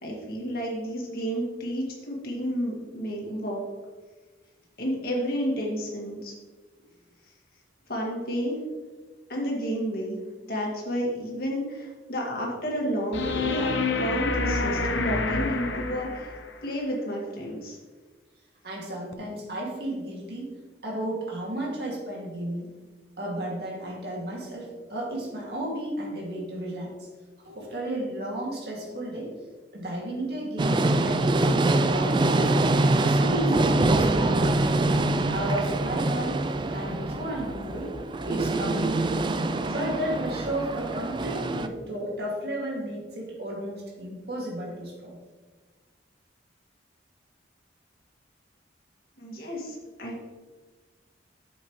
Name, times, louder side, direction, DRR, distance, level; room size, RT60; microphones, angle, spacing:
voice 1, 0.0-3.6 4.8-6.3 7.9-8.6 9.3-10.2 10.4-16.3 16.6-17.8 49.2-50.2, equal, 50° left, -2 dB, 2.0 m, -31 dB
sound 1, 13.1-16.5 19.1-19.2, left 3 dB, 75° left, 0.9 m, -28 dB
voice 2, 18.6-20.6 20.8-22.7 23.2-27.1 27.4-29.3 29.7-32.5 33.0-34.9 35.3-36.4 36.7-37.9 38.2-39.2 39.7-45.2, right 1 dB, 60° right, -3 dB, 2.3 m, -33 dB
sound 2, 30.6-41.7, right 2 dB, 25° right, 0.3 m, -24 dB
8.8 x 7.3 x 3.2 m, 1.3 s
head